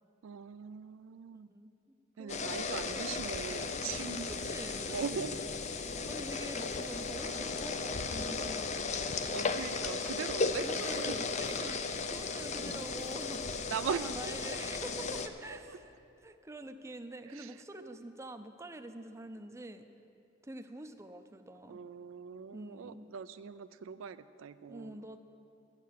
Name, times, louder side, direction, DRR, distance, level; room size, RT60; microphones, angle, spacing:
voice 1, 0.2-1.5 2.2-4.3 4.9-5.4 7.3-7.5 9.3-11.2 13.7-14.2 15.5-15.8 17.3-18.0 21.7-25.1, right 7 dB, 85° right, 12 dB, 0.4 m, -41 dB
voice 2, 1.3-3.2 4.3-5.4 6.1-9.2 10.6-15.9 16.2-19.9 20.4-21.8 22.5-23.1 24.7-25.2, right 1 dB, 15° right, 7 dB, 0.5 m, -47 dB
sound 1, 2.3-15.3, left 4 dB, 35° left, 0.5 m, -35 dB
12.0 x 9.6 x 7.4 m, 2.8 s
head